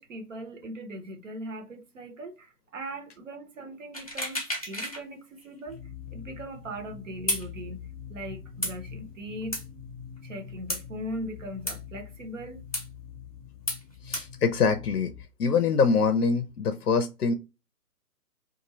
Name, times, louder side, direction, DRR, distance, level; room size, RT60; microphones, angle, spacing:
voice 1, 0.0-5.8 6.1-9.6 10.2-12.6, right 1 dB, 50° right, 1.0 m, -39 dB
sound 1, 3.9-5.0 5.4-5.5 7.3-7.5 8.6-8.7 9.5-9.6 10.7-10.8 11.7-11.8 12.7-12.9 13.7-13.8 14.1-14.3, left 1 dB, 25° left, 0.5 m, -31 dB
sound 2, 5.7-15.2, left 8 dB, 20° right, 0.6 m, -44 dB
voice 2, 14.0-15.1 15.4-17.3, left 5 dB, 70° left, 0.6 m, -24 dB
2.6 x 2.5 x 4.0 m
figure-of-eight pair, 145°, 48 cm